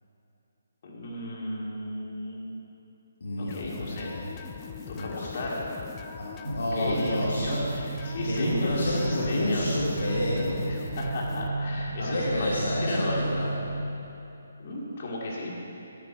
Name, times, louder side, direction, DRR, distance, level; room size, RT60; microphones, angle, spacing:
voice 1, 0.8-2.5 3.4-4.1 4.9-5.8 6.5-9.7 10.7-13.2 14.6-15.5, left 1 dB, 45° left, -4 dB, 2.7 m, -34 dB
voice 2, 3.2-4.3 4.9-5.3 6.1-7.5 8.2-10.7 12.0-13.5, left 1 dB, 70° left, -5 dB, 1.8 m, -30 dB
sound 1, 3.5-11.5, left 7 dB, 25° left, 0.5 m, -41 dB
sound 2, 6.4-13.8, right 3 dB, 85° right, 0.8 m, -33 dB
10.5 x 10.5 x 4.6 m, 2.9 s
figure-of-eight pair, 150°, 0 cm